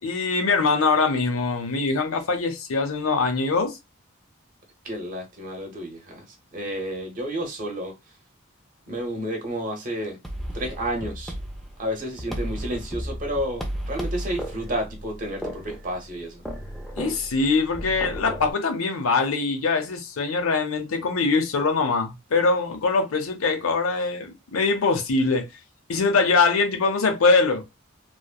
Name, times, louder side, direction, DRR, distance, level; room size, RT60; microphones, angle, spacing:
voice 1, 0.0-3.8 17.0-25.5 25.9-27.6, left 4 dB, 80° left, 0.6 m, -23 dB
voice 2, 4.8-6.3 6.5-7.9 8.9-10.2 10.5-11.3 11.8-16.4, equal, 40° right, 0.9 m, -31 dB
sound 1, 10.2-18.5, equal, ahead, 0.3 m, -34 dB
3.1 x 2.0 x 2.2 m
head